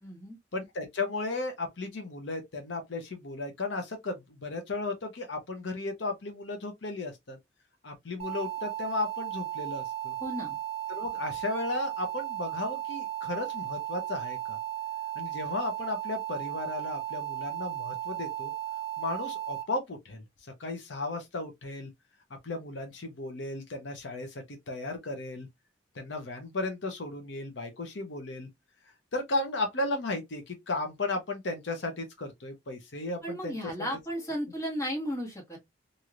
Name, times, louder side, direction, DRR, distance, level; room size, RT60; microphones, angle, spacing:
voice 1, 0.0-0.4 10.2-10.6 33.2-35.6, equal, 15° left, 1.4 m, -34 dB
voice 2, 0.5-7.4 7.8-10.1 10.9-14.6 15.2-18.5 19.0-21.9 22.4-25.5 25.9-28.5 29.1-33.7, left 2 dB, 75° left, 0.8 m, -35 dB
sound 1, 8.2-19.6, right 13 dB, 35° right, 0.7 m, -35 dB
3.1 x 2.7 x 2.4 m
head